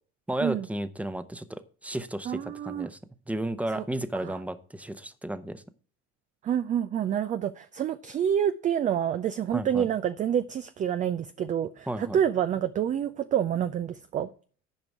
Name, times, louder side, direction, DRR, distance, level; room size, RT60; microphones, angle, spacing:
voice 1, 0.3-3.0 3.3-5.6 9.5-9.9 11.9-12.2, right 1 dB, 5° right, 0.8 m, -33 dB
voice 2, 2.3-2.9 3.7-3.8 4.2-4.4 6.4-14.3, right 9 dB, 20° right, 0.3 m, -28 dB
11.0 x 5.1 x 6.0 m
hypercardioid pair, 80°, 42 cm